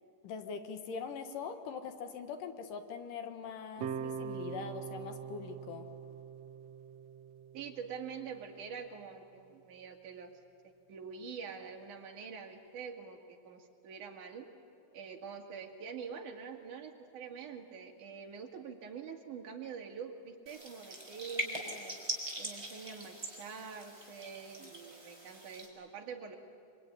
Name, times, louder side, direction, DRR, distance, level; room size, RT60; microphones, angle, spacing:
voice 1, 0.2-5.9, left 6 dB, 75° left, 7 dB, 3.1 m, -42 dB
sound 1, 3.8-8.9, right 7 dB, 85° right, 1.4 m, -43 dB
voice 2, 7.5-10.3 10.9-14.5 14.9-22.0 22.4-26.4, right 6 dB, 70° right, 2 dB, 3.6 m, -45 dB
sound 2, 20.5-25.7, right 1 dB, 10° right, 3.8 m, -42 dB
25.0 x 24.5 x 9.7 m, 2.6 s
omnidirectional pair, 3.9 m